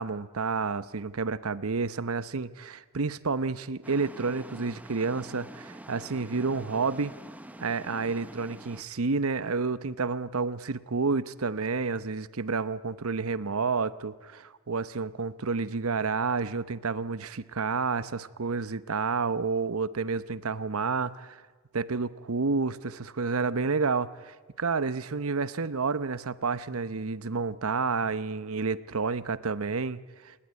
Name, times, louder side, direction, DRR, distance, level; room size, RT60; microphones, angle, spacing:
voice 1, 0.0-7.1 7.6-21.4 21.7-30.3, right 4 dB, 85° right, 15 dB, 0.9 m, -30 dB
sound 1, 3.8-8.8, right 1 dB, 5° right, 0.9 m, -46 dB
28.5 x 19.0 x 9.5 m, 1.4 s
head